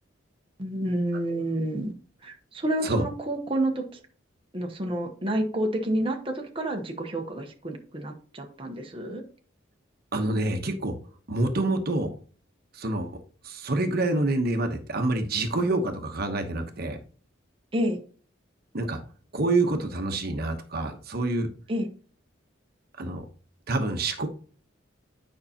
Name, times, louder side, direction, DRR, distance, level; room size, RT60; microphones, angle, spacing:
voice 1, 0.6-1.9 2.2-3.8 4.5-9.2 17.7-18.0 21.7-21.9, right 1 dB, 30° right, 2 dB, 1.0 m, -29 dB
voice 2, 10.1-11.0 11.3-12.1 12.7-13.2 13.4-17.0 18.7-19.0 19.3-21.5 23.0-23.2 23.7-24.3, right 2 dB, 55° right, 5 dB, 1.0 m, -27 dB
9.5 x 5.5 x 2.9 m, 0.41 s
head